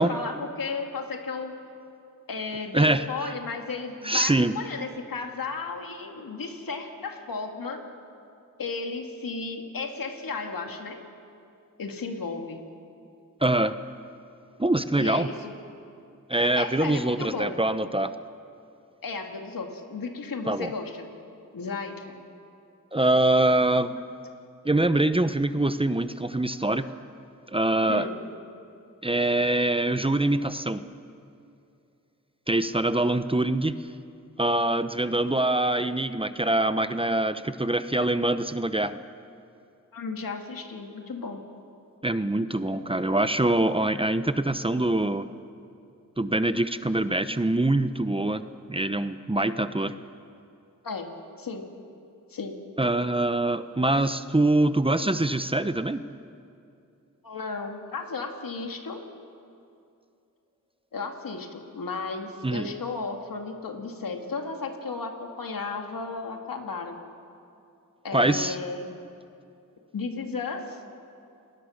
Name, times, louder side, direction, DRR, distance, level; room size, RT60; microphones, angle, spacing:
voice 1, 0.0-1.6 2.3-7.8 8.6-11.0 11.8-12.6 14.9-15.5 16.3-17.5 19.0-21.1 21.5-22.3 27.8-28.2 39.9-41.4 50.8-51.6 52.3-52.5 57.2-59.0 60.9-67.0 68.0-68.9 69.9-70.8, left 4 dB, 80° left, 3 dB, 2.4 m, -34 dB
voice 2, 2.7-3.3 4.0-4.5 13.4-13.8 14.6-15.3 16.3-18.1 20.5-20.7 22.9-23.9 24.6-26.8 27.5-28.1 29.0-30.8 32.5-33.7 34.4-39.0 42.0-45.3 46.2-48.4 48.7-49.9 52.8-56.0 62.4-62.7 68.1-68.6, right 1 dB, 15° right, 11 dB, 0.8 m, -24 dB
30.0 x 20.0 x 6.6 m, 2.5 s
wide cardioid pair, 80°, 33 cm